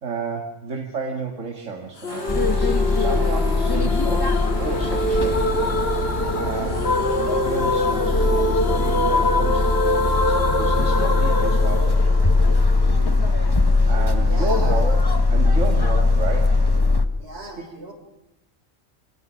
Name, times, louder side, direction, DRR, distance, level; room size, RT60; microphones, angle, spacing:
voice 1, 0.0-2.3 2.5-4.3 4.6-5.8 6.3-9.8 10.3-12.1 13.9-15.0 15.3-16.6 17.6-17.7, right 3 dB, 75° right, 2 dB, 2.2 m, -31 dB
sound 1, 2.0-13.0, left 1 dB, 55° left, 1.5 m, -24 dB
sound 2, 2.1-16.8, right 5 dB, 35° right, 5.0 m, -38 dB
sound 3, 2.3-17.1, left 3 dB, 20° left, 0.8 m, -20 dB
voice 2, 14.2-14.9 17.2-17.9, right 2 dB, 55° right, 3 dB, 4.1 m, -36 dB
25.5 x 17.5 x 6.2 m, 0.89 s
omnidirectional pair, 1.3 m